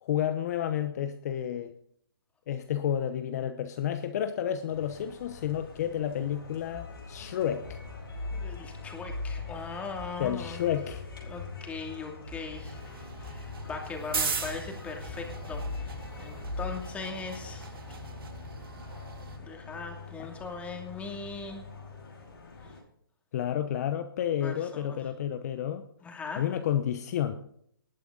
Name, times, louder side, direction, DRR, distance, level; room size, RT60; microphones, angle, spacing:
voice 1, 0.0-1.7 2.5-7.8 10.2-11.0 23.3-25.9 26.4-27.3, left 10 dB, 45° left, 9 dB, 0.9 m, -30 dB
sound 1, 4.7-22.8, left 3 dB, 80° left, 5.4 m, -42 dB
voice 2, 8.3-10.6 11.2-12.9 13.2-18.0 19.4-21.7 24.4-25.0 26.0-26.4, left 4 dB, 10° left, 2 dB, 2.5 m, -40 dB
sound 2, 12.5-19.4, right 5 dB, 75° right, 3.0 m, -39 dB
19.0 x 8.4 x 3.9 m, 0.67 s
hypercardioid pair, 145°, 12 cm